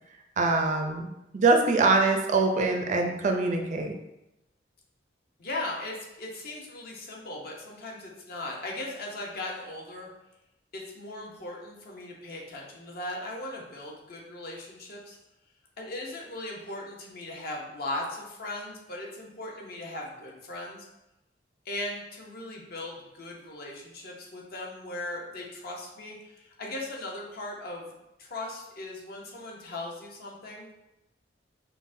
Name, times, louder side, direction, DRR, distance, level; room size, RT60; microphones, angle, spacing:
voice 1, 0.4-1.1 1.3-3.9, right 3 dB, 40° right, 3 dB, 0.4 m, -23 dB
voice 2, 5.4-10.1 10.7-15.2 15.8-20.9 21.6-27.9 28.2-30.7, left 2 dB, 55° left, -1 dB, 0.7 m, -38 dB
5.5 x 2.1 x 2.6 m, 0.92 s
head